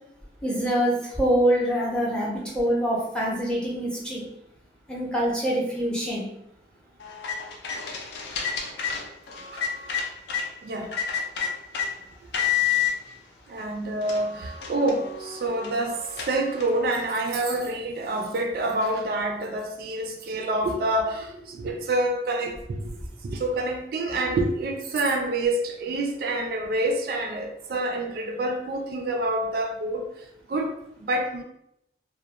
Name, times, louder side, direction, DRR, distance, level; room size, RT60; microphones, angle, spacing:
voice 1, 0.4-4.2 4.9-6.3, equal, 5° left, -4 dB, 0.5 m, -25 dB
sound 1, 7.0-10.5 10.9-11.9 12.3-12.9 13.6-13.7 14.0-16.8, left 8 dB, 70° left, 0.4 m, -30 dB
voice 2, 10.6-10.9 13.5-23.0 23.2-31.4, right 2 dB, 55° right, 3 dB, 0.3 m, -27 dB
2.4 x 2.0 x 2.8 m, 0.80 s
head